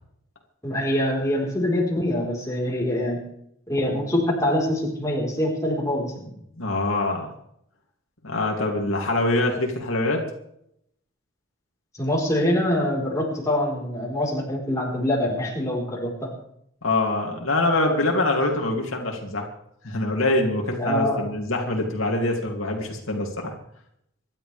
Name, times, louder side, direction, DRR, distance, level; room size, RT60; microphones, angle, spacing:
voice 1, 0.6-3.2 3.7-6.3 11.9-16.3 20.8-21.2, left 1 dB, 15° left, -3 dB, 4.3 m, -24 dB
voice 2, 6.6-7.3 8.2-10.2 16.8-19.5 19.8-23.5, left 2 dB, 80° left, 1 dB, 2.8 m, -24 dB
25.5 x 12.0 x 3.5 m, 0.73 s
head